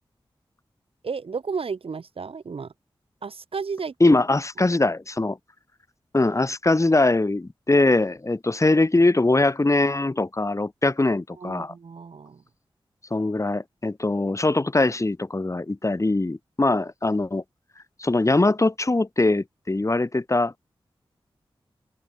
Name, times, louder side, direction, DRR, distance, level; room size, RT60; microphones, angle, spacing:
voice 1, 1.0-2.7 3.2-4.2 11.4-12.4, right 5 dB, 75° right, 3.4 m, -33 dB
voice 2, 4.0-5.4 6.1-11.7 13.1-17.4 18.0-20.5, left 2 dB, 30° left, 2.4 m, -22 dB
open air
cardioid pair, 45°, 10 cm